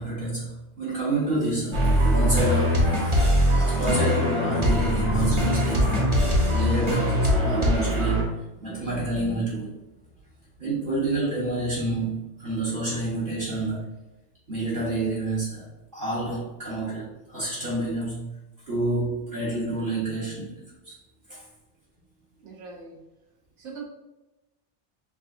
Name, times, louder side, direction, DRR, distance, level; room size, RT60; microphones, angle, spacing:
voice 1, 0.0-3.3 3.7-9.7 10.6-13.8 14.5-15.7 15.9-18.3 18.7-20.6, right 2 dB, 50° right, -9 dB, 1.3 m, -28 dB
sound 1, 1.7-8.2, equal, 30° right, 0.7 m, -22 dB
voice 2, 22.4-23.0 23.6-23.8, right 5 dB, 80° right, -2 dB, 1.2 m, -41 dB
6.0 x 2.4 x 2.6 m, 1.0 s
omnidirectional pair, 1.2 m